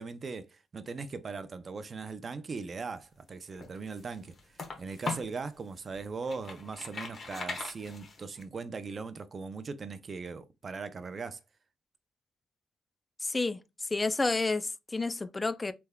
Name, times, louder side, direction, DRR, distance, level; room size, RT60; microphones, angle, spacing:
voice 1, 0.0-4.3 4.8-11.4, right 4 dB, 40° right, 0.5 m, -39 dB
sound 1, 3.3-5.4 5.9-8.4, left 3 dB, 45° left, 1.1 m, -40 dB
voice 2, 13.2-15.7, left 3 dB, 20° left, 0.3 m, -30 dB
3.4 x 3.3 x 2.2 m
cardioid pair, 90°, 0 cm